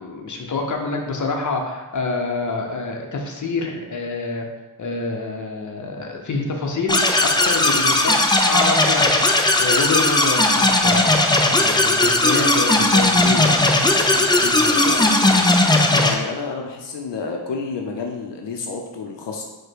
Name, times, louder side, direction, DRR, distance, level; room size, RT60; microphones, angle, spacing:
voice 1, 0.0-4.5 4.8-13.6 13.9-15.1 15.3-15.5, left 3 dB, 45° left, 1 dB, 0.8 m, -27 dB
sound 1, 6.9-16.1, left 2 dB, 10° left, 0.3 m, -17 dB
voice 2, 14.7-15.1 15.9-19.4, left 4 dB, 85° left, 2 dB, 0.6 m, -30 dB
4.8 x 2.2 x 4.5 m, 1.1 s
wide cardioid pair, 70°, 42 cm